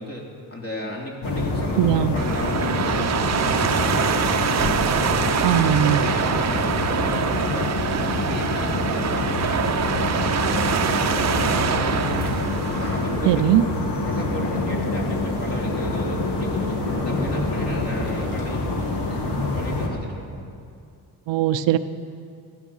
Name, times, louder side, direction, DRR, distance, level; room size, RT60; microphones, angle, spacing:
voice 1, 0.0-4.8 5.1-7.7 7.9-12.4 12.8-13.4 14.0-18.6 19.1-20.4, left 1 dB, 35° left, -2 dB, 3.2 m, -35 dB
sound 1, 1.2-19.9, left 2 dB, 70° left, 2.4 m, -26 dB
voice 2, 1.8-2.1 5.4-6.0 13.3-13.6 21.3-21.8, right 12 dB, 85° right, 11 dB, 0.7 m, -19 dB
sound 2, 2.2-13.3, right 7 dB, 40° right, 0.8 m, -25 dB
16.5 x 13.5 x 5.6 m, 2.4 s
cardioid pair, 120°, 42 cm